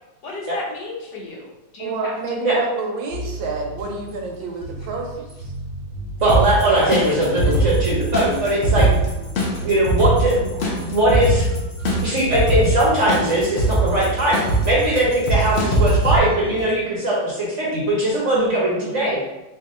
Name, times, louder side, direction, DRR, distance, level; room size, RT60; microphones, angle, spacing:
voice 1, 0.2-2.1 6.7-7.2, left 3 dB, 65° left, -3 dB, 1.4 m, -33 dB
voice 2, 1.8-5.5 9.2-9.4 18.6-19.2, right 3 dB, 80° right, 1 dB, 1.4 m, -29 dB
sound 1, 3.1-16.7, right 3 dB, 30° right, 1.0 m, -34 dB
voice 3, 6.2-8.9 9.6-11.4 12.0-14.3 14.6-19.2, right 1 dB, 50° right, -6 dB, 0.9 m, -20 dB
sound 2, 6.3-16.2, right 2 dB, 85° left, 0.5 m, -22 dB
3.4 x 2.7 x 3.6 m, 1.0 s
omnidirectional pair, 2.1 m